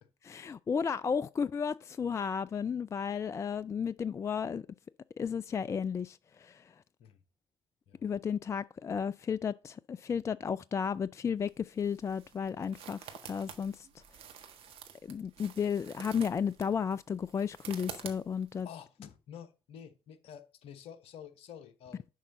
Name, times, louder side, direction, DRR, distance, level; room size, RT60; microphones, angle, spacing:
voice 1, 0.2-4.7 5.2-6.7 8.0-13.0 13.3-13.9 15.0-18.7, left 6 dB, 25° left, 0.3 m, -33 dB
sound 1, 11.4-18.6, right 8 dB, 55° right, 1.5 m, -49 dB
voice 2, 18.6-22.1, left 8 dB, 55° left, 1.1 m, -49 dB
11.0 x 5.5 x 3.9 m
figure-of-eight pair, 50°, 12 cm